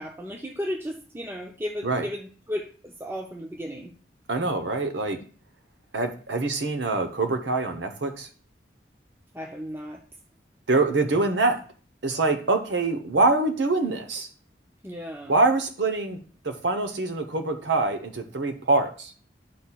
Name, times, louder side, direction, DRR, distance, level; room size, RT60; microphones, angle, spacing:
voice 1, 0.0-3.9 9.3-10.0 14.8-15.4, equal, 10° right, 2 dB, 0.5 m, -34 dB
voice 2, 4.3-5.2 5.9-8.3 10.7-11.6 12.0-14.3 15.3-16.2 16.4-19.1, right 3 dB, 75° right, 7 dB, 0.9 m, -24 dB
10.0 x 4.2 x 2.3 m, 0.40 s
head